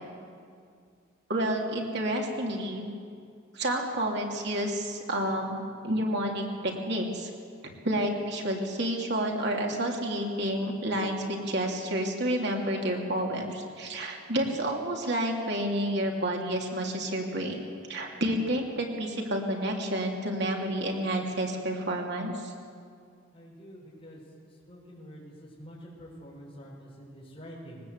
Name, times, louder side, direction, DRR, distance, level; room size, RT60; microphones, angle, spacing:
voice 1, 1.3-2.9 3.5-7.3 7.8-17.6 17.9-22.5, right 1 dB, 55° right, 0 dB, 2.9 m, -30 dB
voice 2, 23.3-24.2 24.7-25.3 25.6-27.8, equal, 25° left, -5 dB, 6.4 m, -47 dB
21.5 x 19.0 x 8.2 m, 2.2 s
head